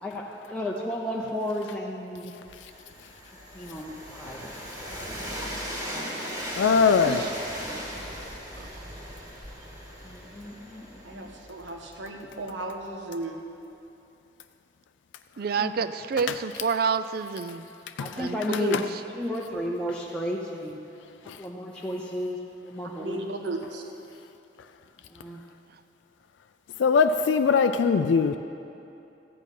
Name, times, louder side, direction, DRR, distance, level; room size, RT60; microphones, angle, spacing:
voice 1, 0.0-2.5 3.5-4.7 5.8-6.1 7.6-8.1 10.0-11.3 15.6-15.7 18.0-18.8 19.1-20.8 21.4-23.2 25.0-25.4, left 1 dB, 5° left, -3 dB, 0.7 m, -33 dB
Train, 2.5-12.3, equal, 20° right, 1.9 m, -38 dB
voice 2, 6.6-7.3 18.0-18.1 18.7-18.8 21.3-21.4 26.8-28.4, left 5 dB, 85° left, 8 dB, 0.4 m, -21 dB
voice 3, 11.0-13.4 23.0-23.9, right 2 dB, 80° right, 2 dB, 1.3 m, -35 dB
voice 4, 15.4-17.7 18.2-19.0, right 5 dB, 55° right, 12 dB, 0.4 m, -29 dB
14.0 x 8.5 x 5.4 m, 2.8 s
head